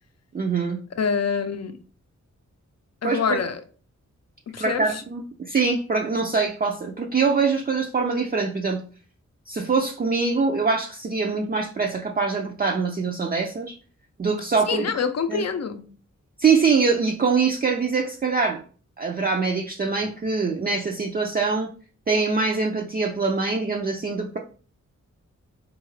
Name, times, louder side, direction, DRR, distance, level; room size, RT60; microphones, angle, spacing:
voice 1, 0.3-0.8 3.0-3.4 4.6-8.8 9.5-13.8 14.2-14.8 15.3-15.5 16.4-18.6 19.0-21.7 22.1-24.4, right 4 dB, 30° right, 0.4 m, -23 dB
voice 2, 1.0-1.8 3.0-3.6 4.5-5.0 14.7-15.9, left 6 dB, 60° left, 0.5 m, -26 dB
3.8 x 2.4 x 3.1 m
cardioid pair, 75°, 30 cm